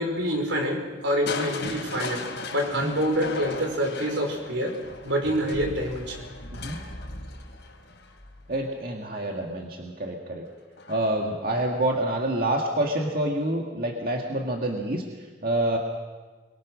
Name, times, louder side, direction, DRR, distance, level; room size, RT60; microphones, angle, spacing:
voice 1, 0.0-2.2 2.5-4.8 5.0-6.3, equal, 85° right, 2 dB, 5.5 m, -26 dB
Crushing, 1.3-9.2 10.8-11.3 11.8-11.9, left 3 dB, 75° left, 3.8 m, -37 dB
voice 2, 8.5-10.5 10.9-15.8, right 1 dB, 50° right, 0 dB, 2.2 m, -27 dB
28.0 x 22.5 x 6.4 m, 1.4 s
head